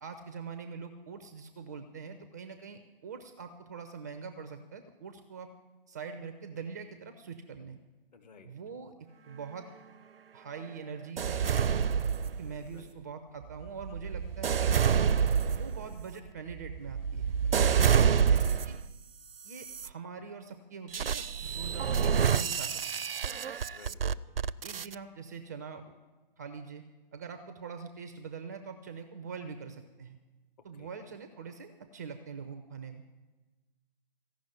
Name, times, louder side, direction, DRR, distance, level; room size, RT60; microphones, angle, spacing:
voice 1, 0.0-5.5 5.9-7.8 8.4-8.9 9.3-9.7 10.3-11.9 12.4-14.9 15.4-18.8 19.4-23.1 24.0-24.1 24.6-25.8 26.4-26.8 27.1-30.2 30.6-33.0, right 5 dB, 20° right, 8 dB, 0.4 m, -43 dB
voice 2, 8.1-8.5 12.7-12.9 18.1-18.6 23.7-24.0 30.6-31.0, left 6 dB, 45° left, 6 dB, 1.5 m, -55 dB
sound 1, 11.2-12.7 13.4-18.9 19.5-19.9 20.9-25.0, right 7 dB, 75° right, 0.5 m, -28 dB
15.0 x 6.1 x 9.7 m, 1.2 s
figure-of-eight pair, 135°, 29 cm